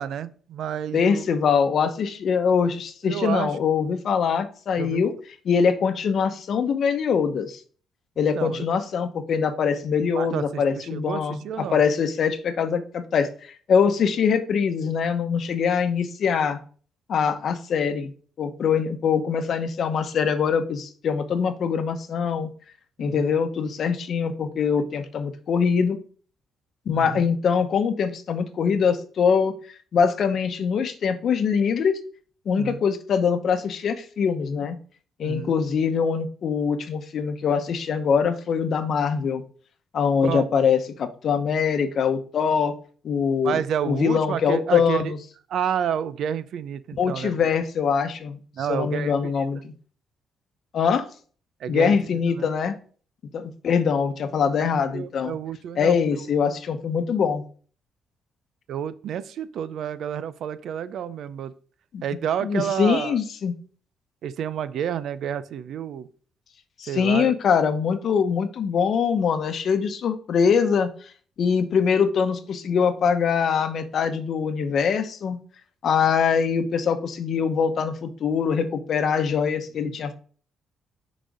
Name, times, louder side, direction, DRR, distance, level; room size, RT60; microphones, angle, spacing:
voice 1, 0.0-1.2 3.0-3.5 4.8-5.0 8.3-8.7 10.2-11.8 23.0-23.3 27.0-27.3 32.5-32.8 35.2-35.5 40.2-40.5 43.4-45.1 45.5-47.4 48.5-49.4 51.6-51.9 52.3-52.5 54.9-56.3 58.7-61.5 62.0-63.2 64.2-66.1 66.9-67.4 79.8-80.0, right 9 dB, 70° right, 15 dB, 0.5 m, -30 dB
voice 2, 0.9-5.1 5.4-7.6 8.2-16.6 17.1-18.1 18.4-22.5 23.0-26.0 26.9-29.5 29.9-32.0 32.5-34.8 35.2-39.4 39.9-42.7 43.0-43.6 43.9-45.2 47.0-48.4 48.7-49.7 50.7-51.1 51.7-52.8 53.3-55.4 55.8-57.4 61.9-62.0 62.4-63.5 66.8-70.9 71.4-75.4 75.8-80.1, left 6 dB, 60° left, 9 dB, 0.8 m, -23 dB
6.4 x 4.0 x 4.8 m, 0.44 s
cardioid pair, 90°, 0 cm